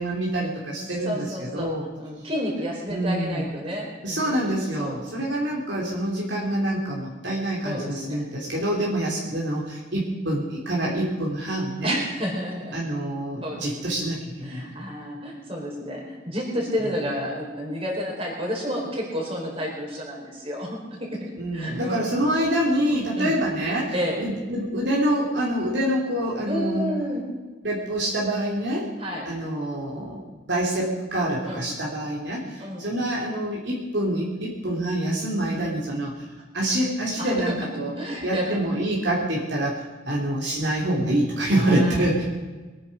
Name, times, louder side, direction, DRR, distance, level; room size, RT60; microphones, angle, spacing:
voice 1, 0.0-1.9 2.9-3.5 4.0-12.0 12.7-14.6 21.4-26.9 27.6-28.9 29.2-36.2 36.5-37.9 38.2-42.2, right 1 dB, 60° right, -3 dB, 2.8 m, -26 dB
voice 2, 1.0-4.4 4.8-5.0 7.6-8.2 11.8-12.8 13.4-13.7 14.4-21.1 21.5-22.1 23.2-23.4 23.9-24.2 26.5-27.2 29.0-29.3 31.4-31.6 32.6-32.9 37.2-37.5 37.9-38.6 41.5-42.0, equal, 30° right, -2 dB, 4.4 m, -30 dB
23.0 x 10.0 x 5.2 m, 1.3 s
head